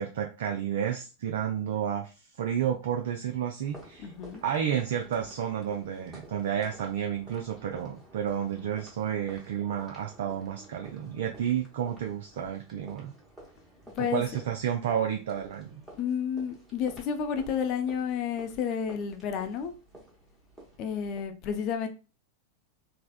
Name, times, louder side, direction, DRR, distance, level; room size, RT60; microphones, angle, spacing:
voice 1, 0.0-4.1 4.4-13.1 14.0-15.8, right 9 dB, 55° right, 0.3 m, -31 dB
sound 1, 3.6-21.2, right 1 dB, 5° right, 1.1 m, -53 dB
voice 2, 4.0-4.4 13.9-14.3 16.0-19.7 20.8-21.9, left 7 dB, 40° left, 0.4 m, -31 dB
3.3 x 2.0 x 2.4 m
figure-of-eight pair, 90°, 0 cm